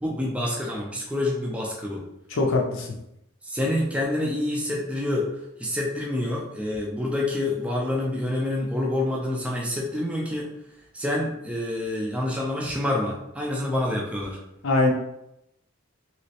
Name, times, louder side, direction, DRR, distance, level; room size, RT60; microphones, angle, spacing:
voice 1, 0.0-2.0 3.4-5.3 5.6-10.5 10.9-14.4, left 1 dB, 5° right, -3 dB, 0.4 m, -27 dB
voice 2, 2.3-2.9 14.6-14.9, left 2 dB, 75° left, 0 dB, 0.5 m, -22 dB
3.1 x 3.1 x 2.8 m, 0.83 s
head